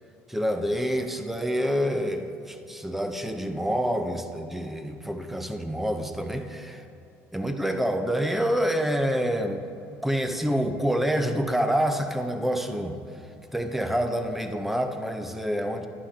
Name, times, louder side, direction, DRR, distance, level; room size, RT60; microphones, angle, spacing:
voice 1, 0.3-6.8 7.3-9.7 10.0-13.0 13.5-15.9, equal, 5° right, 7 dB, 0.6 m, -27 dB
11.0 x 10.0 x 2.8 m, 2.6 s
cardioid pair, 115°, 6 cm